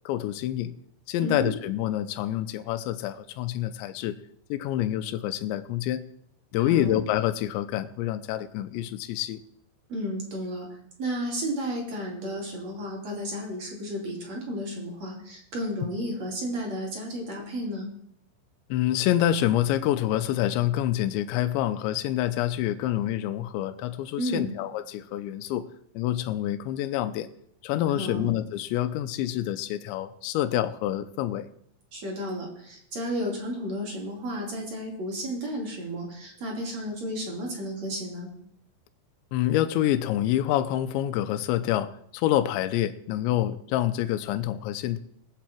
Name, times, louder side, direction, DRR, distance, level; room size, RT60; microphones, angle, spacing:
voice 1, 0.1-0.7 1.1-4.2 4.5-6.0 6.5-9.4 18.7-25.7 25.9-27.3 27.6-31.5 39.3-45.0, left 12 dB, 80° left, 12 dB, 2.8 m, -27 dB
voice 2, 1.2-1.5 6.6-7.0 9.9-10.7 11.0-17.9 24.2-24.5 27.9-28.3 31.9-38.3, equal, 35° right, -1 dB, 3.8 m, -32 dB
20.0 x 8.2 x 4.5 m, 0.72 s
omnidirectional pair, 5.5 m